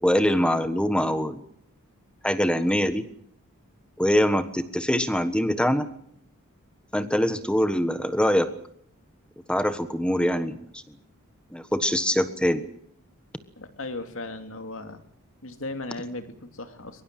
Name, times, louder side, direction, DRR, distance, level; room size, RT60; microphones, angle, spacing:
voice 1, 0.0-1.4 2.2-3.1 4.0-5.9 6.9-8.5 9.5-10.6 11.5-12.6, equal, 5° left, 11 dB, 1.3 m, -23 dB
voice 2, 13.6-15.0 15.4-17.0, left 2 dB, 60° left, 8 dB, 2.5 m, -36 dB
23.0 x 22.0 x 7.6 m, 0.68 s
head